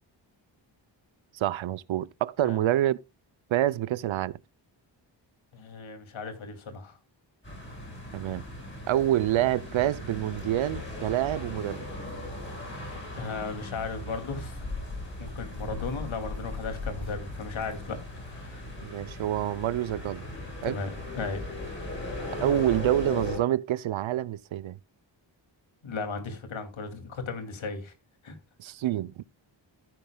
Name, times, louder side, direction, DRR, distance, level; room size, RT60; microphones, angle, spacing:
voice 1, 1.3-3.0 3.5-4.4 8.1-8.4 8.9-11.9 18.8-20.2 20.6-20.8 22.4-24.8 28.6-29.2, right 13 dB, 85° right, 0.6 m, -27 dB
voice 2, 5.5-7.0 13.2-14.6 15.2-18.6 20.6-21.4 25.8-27.9 28.2-28.4, left 4 dB, 80° left, 2.6 m, -36 dB
sound 1, 7.4-23.4, left 2 dB, 25° left, 6.4 m, -38 dB
14.0 x 9.8 x 2.2 m
wide cardioid pair, 170°, 46 cm